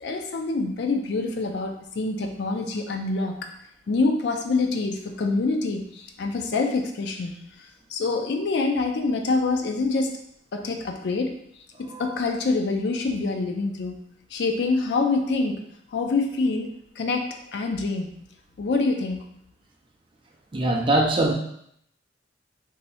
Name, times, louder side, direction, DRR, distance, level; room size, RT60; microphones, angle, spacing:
voice 1, 0.0-3.5 3.9-7.3 7.9-10.1 10.5-11.3 11.8-14.0 14.3-15.6 15.9-16.7 17.0-18.1 18.6-19.2, left 3 dB, 60° left, 4 dB, 0.4 m, -26 dB
voice 2, 20.5-21.3, right 1 dB, 25° right, 0 dB, 0.4 m, -22 dB
2.7 x 2.6 x 3.3 m, 0.72 s
head